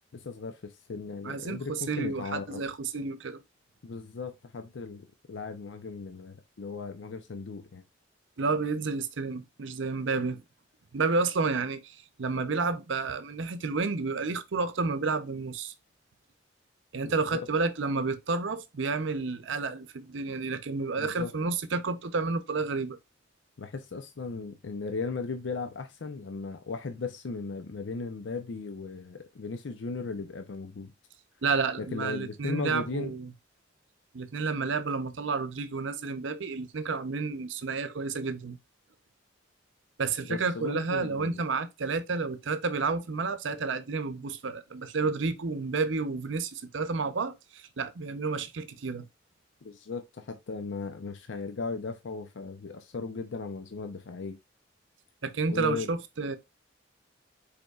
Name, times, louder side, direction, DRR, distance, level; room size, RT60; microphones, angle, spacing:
voice 1, 0.1-2.7 3.8-7.8 17.0-17.5 21.0-21.3 23.6-30.9 31.8-33.1 40.3-41.4 49.6-54.4 55.5-55.9, left 4 dB, 70° left, 0.5 m, -37 dB
voice 2, 1.2-3.4 8.4-10.4 10.9-15.7 16.9-23.0 31.4-33.3 34.1-38.6 40.0-49.1 55.2-56.4, right 4 dB, 75° right, 0.6 m, -30 dB
5.3 x 4.3 x 2.3 m
head